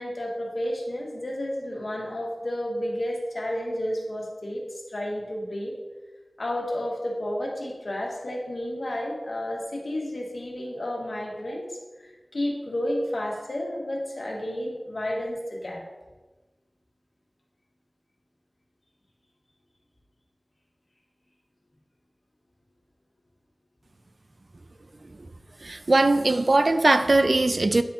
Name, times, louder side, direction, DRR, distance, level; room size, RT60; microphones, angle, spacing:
voice 1, 0.0-5.8 6.4-11.8 12.3-15.8, left 1 dB, 80° left, -2 dB, 1.5 m, -31 dB
voice 2, 25.6-27.8, right 2 dB, 65° right, 10 dB, 0.4 m, -20 dB
9.3 x 4.1 x 3.6 m, 1.2 s
wide cardioid pair, 55°, 0 cm